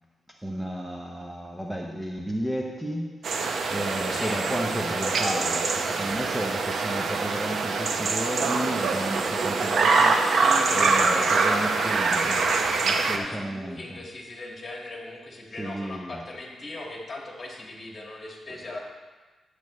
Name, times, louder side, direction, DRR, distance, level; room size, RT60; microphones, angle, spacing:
voice 1, 0.4-10.2 10.7-12.4 12.8-14.0 15.6-16.2, equal, 10° right, 0 dB, 0.7 m, -33 dB
sound 1, 3.2-13.2, right 4 dB, 65° right, 0.7 m, -24 dB
voice 2, 4.1-4.4 10.0-18.8, left 2 dB, 35° left, -1 dB, 1.9 m, -38 dB
10.5 x 8.0 x 3.2 m, 1.3 s
cardioid pair, 120°, 0 cm